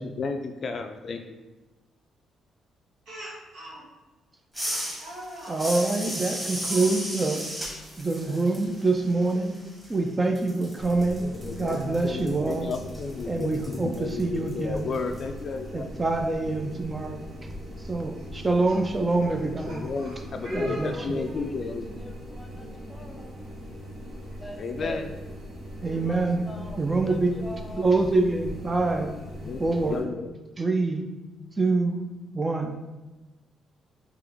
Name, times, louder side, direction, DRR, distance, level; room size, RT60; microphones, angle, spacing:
voice 1, 0.0-1.4 11.2-16.0 19.7-22.1 24.6-25.1 29.4-30.3 31.4-31.5, left 4 dB, 50° left, 6 dB, 0.3 m, -33 dB
Speech, 3.1-3.8 4.7-5.6 6.6-6.9 8.1-8.4 8.8-8.9 10.6-10.7 11.5-12.4 13.7-13.8 14.1-14.2 16.1-16.2 16.8-17.1 18.2-21.5, right 1 dB, 80° right, 1.2 m, -44 dB
sound 1, 4.5-10.1 10.4-15.2, equal, 10° right, 1.3 m, -36 dB
voice 2, 5.4-7.5 8.0-9.6 9.9-11.3 11.6-12.7 13.3-14.9 15.7-17.2 17.8-19.9 20.5-21.2 25.8-26.5 26.8-27.4 27.8-29.2 29.6-30.0 30.6-31.1 31.6-32.0 32.3-32.7, right 3 dB, 25° right, 4 dB, 0.4 m, -25 dB
sound 2, 10.8-30.0, equal, 60° right, 0.9 m, -41 dB
voice 3, 20.5-23.3 23.9-25.2 25.9-27.9, left 1 dB, 10° left, 2 dB, 0.7 m, -40 dB
3.8 x 2.9 x 3.4 m, 1.1 s
cardioid pair, 90°, 0 cm